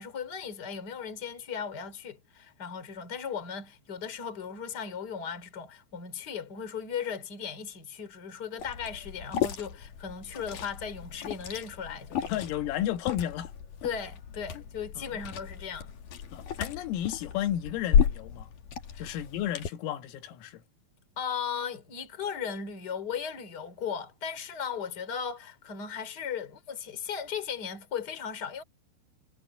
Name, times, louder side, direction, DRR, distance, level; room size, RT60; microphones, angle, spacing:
voice 1, 0.0-12.4 13.8-15.9 18.9-19.2 21.2-28.6, left 7 dB, 25° left, 3.2 m, -37 dB
Liquid, 8.6-19.7, left 8 dB, 50° left, 2.9 m, -33 dB
voice 2, 12.3-13.5 16.3-18.5 19.0-20.6, left 12 dB, 80° left, 4.1 m, -32 dB
omnidirectional pair, 5.9 m